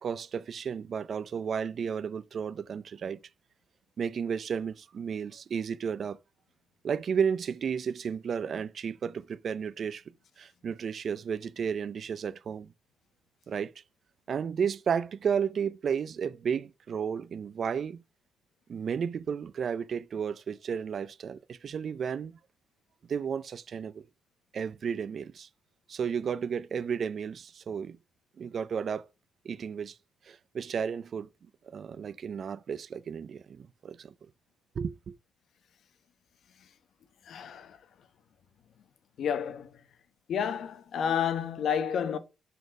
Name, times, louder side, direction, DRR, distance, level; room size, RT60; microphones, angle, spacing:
voice 1, 0.0-3.2 4.0-6.2 6.8-10.0 10.4-12.7 13.5-13.7 14.3-18.0 18.7-22.4 23.1-24.0 24.5-25.5 25.9-28.0 28.4-29.1 29.4-30.0 30.2-31.3 31.6-34.1 34.8-35.1, right 7 dB, 50° right, 0.5 m, -33 dB
voice 2, 37.3-37.8 39.2-39.7 40.3-42.2, left 8 dB, 65° left, 1.0 m, -30 dB
7.3 x 4.0 x 6.5 m
cardioid pair, 90°, 0 cm